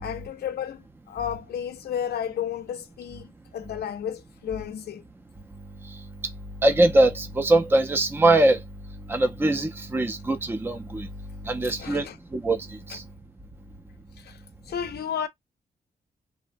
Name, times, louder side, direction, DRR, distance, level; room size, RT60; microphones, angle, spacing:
voice 1, 0.0-5.0 11.8-12.1 14.2-14.4 14.7-15.3, left 9 dB, 75° left, 0.5 m, -32 dB
voice 2, 6.6-8.6 9.1-11.1 11.5-12.1 12.3-13.0, right 2 dB, 15° right, 0.5 m, -22 dB
2.9 x 2.1 x 2.6 m
wide cardioid pair, 165°, 17 cm